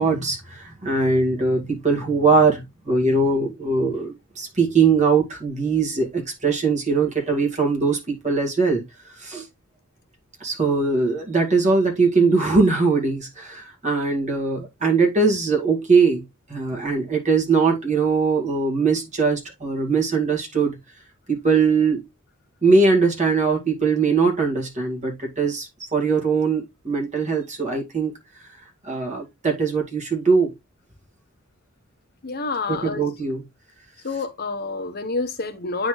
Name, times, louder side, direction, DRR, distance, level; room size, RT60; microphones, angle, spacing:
voice 1, 0.0-8.8 9.2-9.5 10.4-16.2 16.5-20.8 21.3-22.1 22.6-28.2 28.8-30.5 32.7-33.4, right 4 dB, 35° right, 2.2 m, -21 dB
voice 2, 32.2-33.0 34.0-35.9, left 3 dB, 50° left, 0.9 m, -28 dB
9.0 x 3.9 x 3.2 m
head